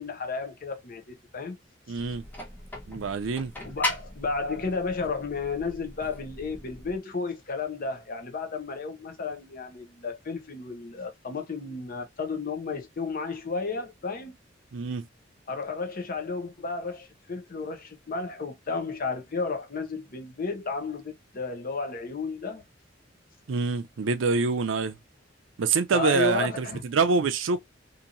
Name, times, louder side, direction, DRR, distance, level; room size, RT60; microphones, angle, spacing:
voice 1, 0.0-1.6 1.9-2.1 3.6-14.3 15.5-22.6 25.9-26.8, left 4 dB, 50° left, 0.8 m, -33 dB
voice 2, 1.9-2.2 2.9-3.5 14.7-15.1 23.5-25.0 25.6-27.6, right 4 dB, 75° right, 0.5 m, -26 dB
sound 1, 2.0-7.0, left 2 dB, 10° left, 1.0 m, -38 dB
2.9 x 2.6 x 2.5 m
head